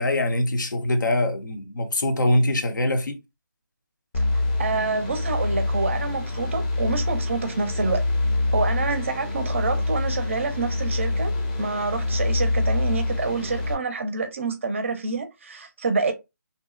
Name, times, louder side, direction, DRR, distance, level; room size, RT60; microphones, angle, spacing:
voice 1, 0.0-3.2, left 1 dB, 70° left, 0.6 m, -23 dB
sound 1, 4.1-13.7, left 2 dB, 25° left, 0.5 m, -25 dB
voice 2, 4.3-8.0 8.5-16.1, right 4 dB, 40° right, 0.5 m, -27 dB
2.6 x 2.0 x 2.3 m
figure-of-eight pair, 165°, 10 cm